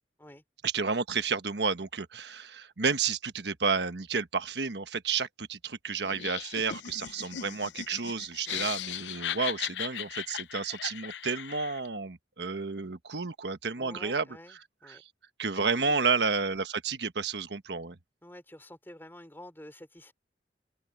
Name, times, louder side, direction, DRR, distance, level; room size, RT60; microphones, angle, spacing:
voice 1, 0.6-14.2 14.9-15.0 15.4-18.0, right 5 dB, 70° right, 1.2 m, -31 dB
Laughter, 6.0-11.9, left 10 dB, 85° left, 0.6 m, -37 dB
voice 2, 13.8-15.0 15.5-16.1 18.2-20.1, left 1 dB, 10° left, 4.2 m, -49 dB
open air
head